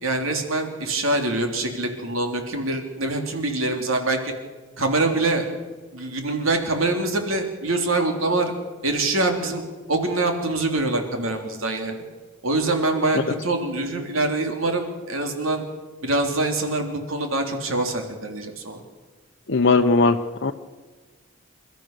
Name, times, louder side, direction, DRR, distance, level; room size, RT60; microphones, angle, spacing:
voice 1, 0.0-4.3 4.8-5.4 5.9-8.5 8.8-9.6 9.9-12.0 12.4-15.6 16.0-18.8, right 2 dB, 75° right, 4 dB, 3.3 m, -24 dB
voice 2, 19.5-20.5, left 3 dB, 60° left, 5 dB, 0.8 m, -19 dB
28.5 x 14.0 x 6.7 m, 1.3 s
head